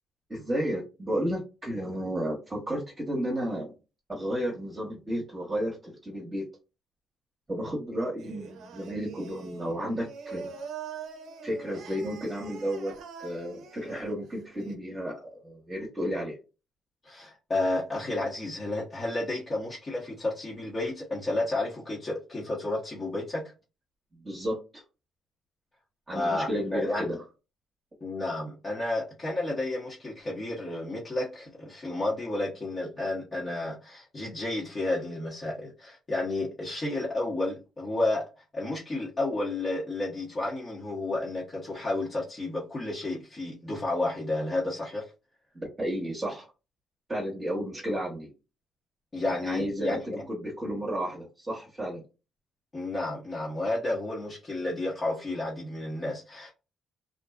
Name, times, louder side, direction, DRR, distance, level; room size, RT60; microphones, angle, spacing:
voice 1, 0.3-3.7 4.1-6.4 7.5-10.5 11.4-12.9 13.2-16.4 24.2-24.8 26.1-27.2 45.5-46.5 47.1-48.3 49.3-52.0, equal, 25° right, 1.0 m, -32 dB
Singing, 8.2-14.7, right 6 dB, 75° right, 0.6 m, -43 dB
voice 2, 17.0-23.5 26.1-27.1 28.0-45.1 49.1-50.1 52.7-56.5, left 2 dB, 35° left, 0.9 m, -31 dB
2.5 x 2.2 x 2.3 m
cardioid pair, 90°, 0 cm